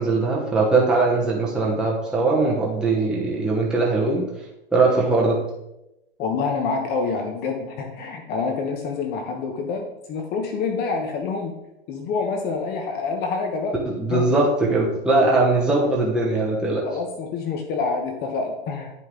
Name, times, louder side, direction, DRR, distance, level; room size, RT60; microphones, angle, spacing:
voice 1, 0.0-4.3 4.7-5.4 13.9-16.8, right 3 dB, ahead, -4 dB, 1.0 m, -20 dB
voice 2, 6.2-11.5 11.9-13.7 14.1-14.2 16.8-18.9, left 4 dB, 30° left, 3 dB, 1.0 m, -27 dB
9.6 x 5.5 x 3.8 m, 0.90 s
hypercardioid pair, 135°, 32 cm